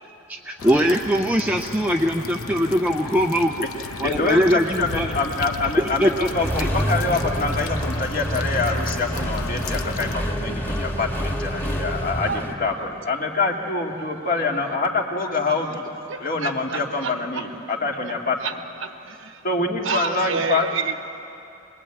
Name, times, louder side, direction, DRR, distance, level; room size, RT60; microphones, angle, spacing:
voice 1, 0.3-3.6 4.0-5.1 5.8-6.7, equal, 5° right, 2 dB, 0.6 m, -21 dB
sound 1, 0.6-10.1, left 4 dB, 75° left, 0.9 m, -34 dB
voice 2, 4.0-15.8 16.2-18.4 19.4-20.7, left 3 dB, 40° left, 1 dB, 2.2 m, -25 dB
Accelerating revving vroom, 6.3-12.5, equal, 10° left, 1.8 m, -27 dB
voice 3, 16.1-17.4 17.8-17.9 18.4-18.5 18.8-19.4 19.8-20.9, right 5 dB, 60° right, 8 dB, 1.0 m, -29 dB
23.5 x 21.0 x 8.8 m, 2.7 s
head